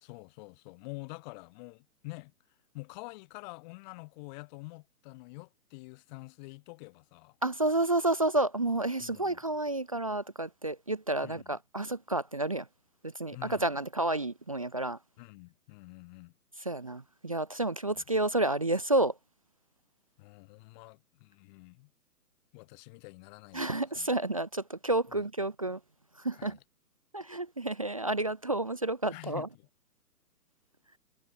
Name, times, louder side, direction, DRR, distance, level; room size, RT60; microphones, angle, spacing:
voice 1, 0.0-2.3 2.7-7.3 9.0-9.4 11.2-11.6 13.3-13.7 15.2-16.3 18.0-18.1 20.2-21.9 22.5-24.1 25.1-25.3 26.4-26.6 29.1-29.7, left 25 dB, 30° left, 2.7 m, -47 dB
voice 2, 7.4-12.6 13.2-15.0 16.7-19.1 23.5-25.8 26.2-26.6 27.1-29.5, right 2 dB, 25° right, 0.4 m, -30 dB
hypercardioid pair, 145°, 47 cm